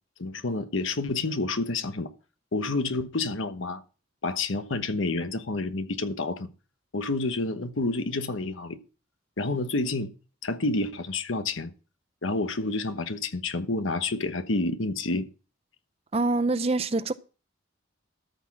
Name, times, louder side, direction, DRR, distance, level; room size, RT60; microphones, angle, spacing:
voice 1, 0.2-2.1 2.5-3.8 4.2-6.5 6.9-8.8 9.4-10.1 10.4-11.7 12.2-15.3, left 2 dB, 80° left, 1.1 m, -29 dB
voice 2, 16.1-17.1, right 2 dB, 30° right, 0.5 m, -25 dB
13.5 x 6.2 x 5.9 m
head